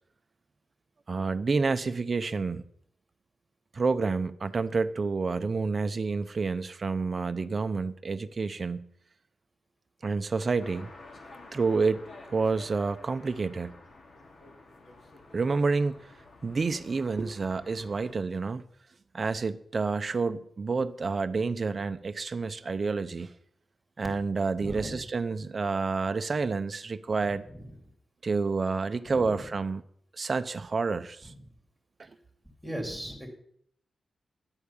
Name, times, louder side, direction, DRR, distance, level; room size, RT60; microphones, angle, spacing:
voice 1, 1.1-2.6 3.7-8.8 10.0-10.9 11.5-12.0 12.3-13.7 15.3-15.9 16.4-18.6 19.1-23.3 24.0-27.4 28.2-29.8 30.2-31.3, right 4 dB, 35° right, 0.6 m, -29 dB
sound 1, 10.6-18.1, left 2 dB, 55° left, 2.4 m, -50 dB
voice 2, 24.6-25.0 27.2-27.8 29.0-29.5 31.2-31.5 32.6-33.3, equal, 5° left, 3.0 m, -39 dB
11.0 x 8.4 x 7.1 m
wide cardioid pair, 145°, 0 cm